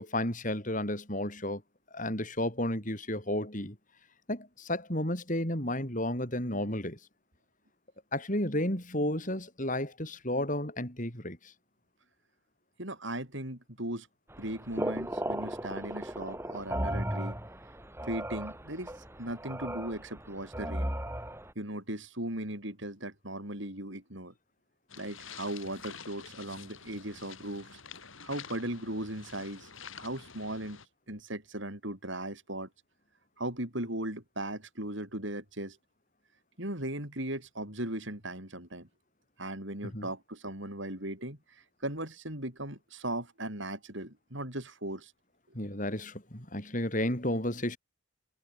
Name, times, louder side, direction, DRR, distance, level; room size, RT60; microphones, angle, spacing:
voice 1, 0.0-1.6 1.9-3.8 4.3-7.0 8.1-11.5 39.9-40.1 45.5-47.8, left 1 dB, 35° left, 6.6 m, -32 dB
voice 2, 12.8-14.1 14.4-17.4 18.0-20.9 21.6-24.3 25.0-27.8 28.2-29.7 30.0-30.8 31.1-32.7 33.4-35.8 36.6-38.9 39.4-45.1, right 1 dB, 60° right, 7.2 m, -38 dB
sound 1, 14.3-21.5, right 1 dB, 10° right, 5.4 m, -36 dB
sound 2, 24.9-30.9, left 6 dB, 70° left, 6.4 m, -48 dB
head